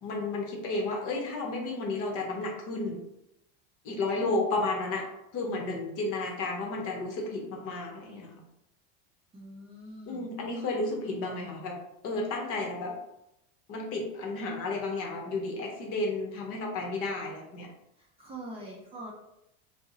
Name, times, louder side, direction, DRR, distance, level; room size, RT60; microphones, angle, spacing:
voice 1, 0.0-3.0 3.8-5.0 5.3-8.4 10.1-11.8 12.0-12.9 13.7-17.7, left 2 dB, 45° left, 0 dB, 0.8 m, -32 dB
voice 2, 9.3-10.3 18.0-19.1, right 1 dB, 20° right, -4 dB, 0.5 m, -44 dB
2.5 x 2.0 x 3.8 m, 0.83 s
supercardioid pair, 140°, 32 cm